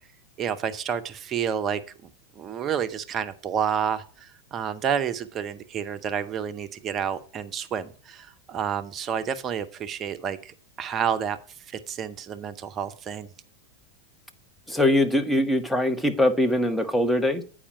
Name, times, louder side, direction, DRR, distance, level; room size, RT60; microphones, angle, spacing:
voice 1, 0.4-2.1 2.4-11.4 11.7-13.3, right 8 dB, 30° right, 11 dB, 0.7 m, -30 dB
voice 2, 14.7-17.4, left 1 dB, 5° left, 6 dB, 0.9 m, -22 dB
8.6 x 4.9 x 5.5 m, 0.40 s
figure-of-eight pair, 90°, 0 cm